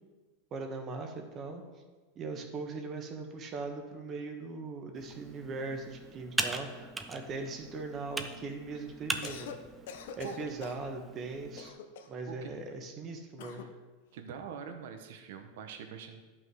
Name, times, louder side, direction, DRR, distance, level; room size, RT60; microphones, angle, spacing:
voice 1, 0.5-1.6 2.1-9.6 10.2-11.7 12.1-13.6, right 3 dB, 30° right, 4 dB, 1.3 m, -40 dB
Computer keyboard, 4.9-11.7, right 3 dB, 10° right, 0.6 m, -40 dB
Cough, 9.1-9.6 9.9-10.9 11.6-12.2 13.4-13.7, left 7 dB, 70° left, 0.8 m, -45 dB
voice 2, 14.1-16.2, right 7 dB, 70° right, 6 dB, 1.2 m, -44 dB
11.0 x 5.6 x 4.8 m, 1.3 s
supercardioid pair, 145°, 0 cm